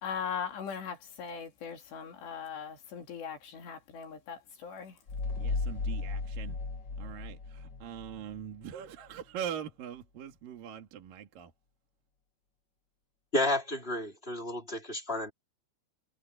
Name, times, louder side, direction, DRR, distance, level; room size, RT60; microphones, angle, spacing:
voice 1, 0.0-5.0, left 7 dB, 60° left, 5.4 m, -39 dB
sound 1, 5.1-8.4, left 3 dB, 45° left, 1.5 m, -35 dB
voice 2, 5.4-6.6 7.0-11.5, right 9 dB, 55° right, 3.4 m, -42 dB
voice 3, 13.3-15.3, left 1 dB, 10° left, 4.5 m, -31 dB
omnidirectional pair, 5.5 m